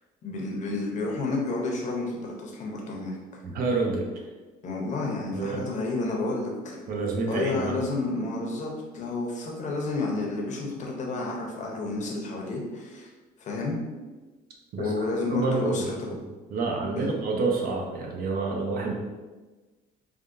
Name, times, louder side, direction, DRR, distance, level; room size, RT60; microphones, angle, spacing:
voice 1, 0.2-3.4 4.6-6.8 7.3-13.1 13.4-13.8 14.8-16.1 17.0-17.1, left 3 dB, 45° left, -1 dB, 0.8 m, -30 dB
voice 2, 3.4-4.0 5.3-5.6 6.9-7.8 14.7-14.9 15.3-16.2 16.5-18.9, right 3 dB, 60° right, 0 dB, 0.7 m, -28 dB
3.5 x 2.3 x 2.6 m, 1.2 s
cardioid pair, 110°, 17 cm